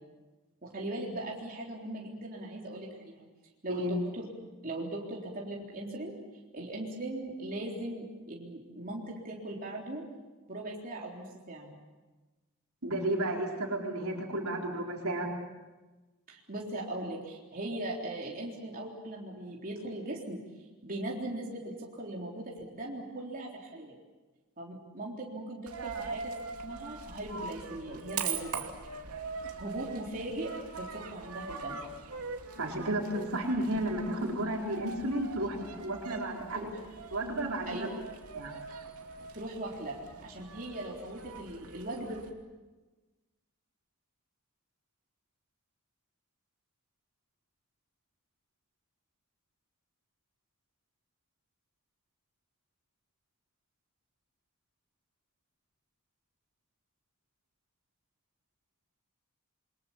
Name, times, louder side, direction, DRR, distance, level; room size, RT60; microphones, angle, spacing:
voice 1, 0.6-3.3 3.6-4.3 4.6-6.1 6.5-10.1 10.5-11.7 16.3-20.4 20.8-24.0 24.6-26.3 26.6-28.6 29.6-31.9 36.5-36.9 37.7-37.9 39.3-42.2, right 1 dB, 40° right, -2 dB, 3.8 m, -39 dB
voice 2, 12.8-15.3 32.5-36.6 37.1-37.9 38.3-38.5, right 1 dB, 65° right, 0 dB, 4.5 m, -32 dB
Coin (dropping), 25.7-42.3, right 5 dB, 85° right, 2.7 m, -42 dB
28.0 x 24.0 x 7.4 m, 1.2 s
head